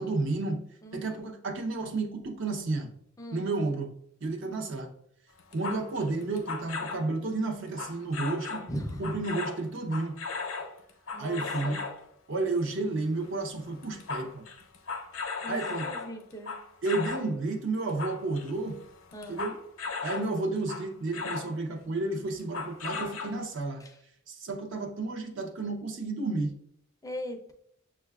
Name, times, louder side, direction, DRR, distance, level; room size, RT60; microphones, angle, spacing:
voice 1, 0.0-0.6 0.9-2.9 3.3-3.9 4.2-4.9 5.5-8.6 9.0-10.2 11.2-11.9 12.3-14.5 15.5-15.9 16.8-18.8 19.3-19.6 20.0-23.8 24.3-26.6, right 3 dB, 65° right, 0.6 m, -31 dB
voice 2, 0.8-1.3 3.2-3.5 4.4-4.6 8.7-9.1 11.1-11.8 15.4-16.6 19.1-19.4 23.8-24.0 27.0-27.5, equal, 15° left, 0.4 m, -39 dB
sound 1, 5.4-7.1 7.8-8.7 9.0-12.0 13.1-13.4 13.6-17.3 17.7-20.3 20.7-21.5 22.4-23.6, left 4 dB, 75° left, 0.5 m, -37 dB
6.3 x 2.2 x 2.3 m
head